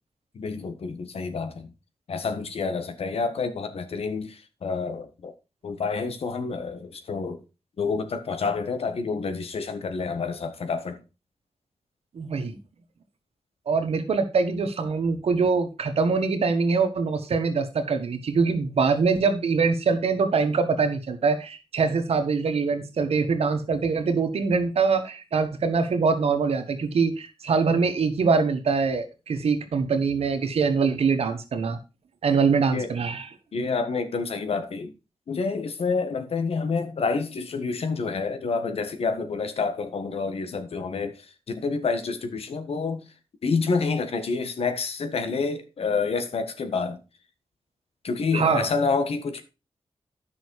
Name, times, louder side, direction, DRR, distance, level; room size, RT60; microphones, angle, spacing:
voice 1, 0.3-1.7 2.1-5.3 5.6-7.4 7.8-11.0 32.7-32.9 33.5-34.9 35.3-43.0 43.4-47.0 48.0-49.4, left 4 dB, 80° left, 1.5 m, -28 dB
voice 2, 12.1-12.6 13.7-31.8 32.2-33.3 48.3-48.6, right 5 dB, 85° right, 1.6 m, -23 dB
10.5 x 6.2 x 4.7 m
wide cardioid pair, 90°, 10 cm